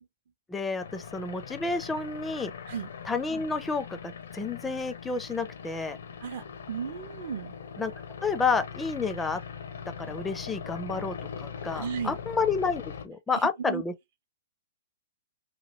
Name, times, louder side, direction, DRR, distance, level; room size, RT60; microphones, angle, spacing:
voice 1, 0.5-2.5 3.1-6.0 7.8-7.9 8.2-9.4 10.0-13.9, left 4 dB, 10° left, 0.4 m, -30 dB
sound 1, 0.8-13.1, left 7 dB, 70° left, 0.6 m, -41 dB
voice 2, 6.2-7.6 11.7-12.2 13.3-13.8, right 7 dB, 55° right, 0.6 m, -35 dB
2.9 x 2.4 x 2.9 m
figure-of-eight pair, 115°, 0 cm